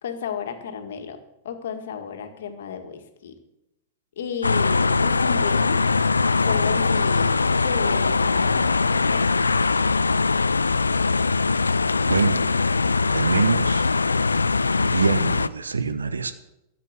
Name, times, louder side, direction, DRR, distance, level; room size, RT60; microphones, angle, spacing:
voice 1, 0.0-1.2 1.4-3.4 4.2-6.2 6.4-9.3, left 7 dB, 65° left, 6 dB, 1.8 m, -33 dB
sound 1, 4.4-15.5, left 4 dB, 85° left, 0.4 m, -21 dB
voice 2, 12.0-12.5 13.1-13.9 14.8-16.3, right 4 dB, 80° right, 11 dB, 0.8 m, -24 dB
13.0 x 7.9 x 8.2 m, 0.89 s
figure-of-eight pair, 95°, 0 cm